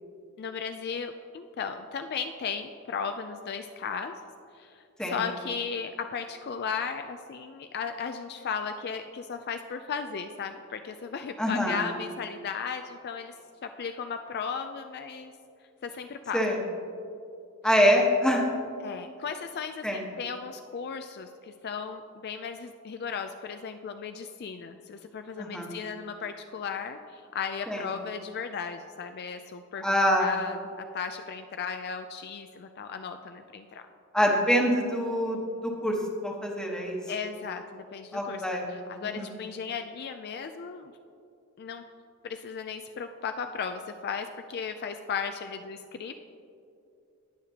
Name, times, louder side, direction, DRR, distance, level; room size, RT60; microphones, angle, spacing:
voice 1, 0.4-4.2 4.5-13.3 13.6-15.3 15.8-16.4 18.8-29.8 30.2-33.8 37.1-40.9 41.6-41.8 42.2-46.1, left 6 dB, 50° left, 7 dB, 0.4 m, -36 dB
voice 2, 11.4-11.8 16.3-16.6 17.6-18.4 19.8-20.0 25.4-25.7 27.7-27.8 29.8-30.3 34.1-36.0 36.2-37.0 38.1-38.6 39.0-39.3, equal, 5° left, -1 dB, 1.2 m, -25 dB
19.0 x 6.7 x 2.8 m, 2.6 s
head